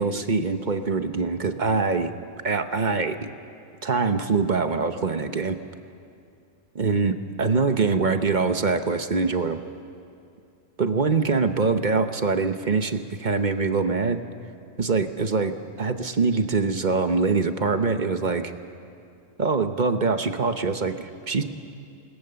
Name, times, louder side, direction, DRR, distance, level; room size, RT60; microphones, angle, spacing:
voice 1, 0.0-2.1 2.4-3.3 3.8-5.6 6.7-9.6 10.8-14.2 14.8-15.5 15.8-18.4 19.4-21.5, right 4 dB, 40° right, 8 dB, 1.0 m, -24 dB
29.0 x 20.5 x 6.9 m, 2.5 s
omnidirectional pair, 1.4 m